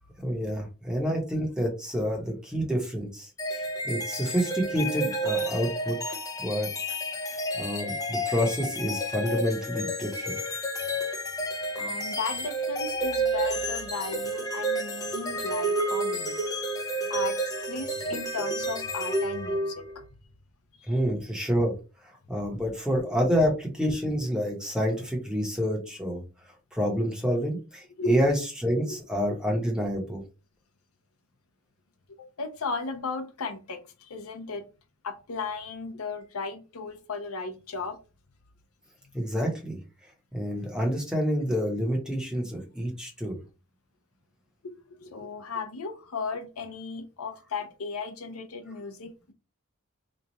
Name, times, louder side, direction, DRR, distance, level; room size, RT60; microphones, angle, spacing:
voice 1, 0.2-6.0 6.4-6.7 7.2-10.3 20.9-21.7 22.3-26.2 26.7-28.3 28.6-30.2 39.1-39.8 40.3-43.4, equal, 5° right, -1 dB, 0.9 m, -28 dB
sound 1, 3.4-20.0, right 1 dB, 15° left, 0.5 m, -30 dB
voice 2, 11.8-16.3 17.1-20.0 20.8-20.9 28.0-28.2 28.8-28.9 32.4-34.6 35.0-38.0 44.6-49.3, left 4 dB, 80° left, 7 dB, 0.7 m, -35 dB
3.1 x 2.3 x 4.0 m, 0.31 s
head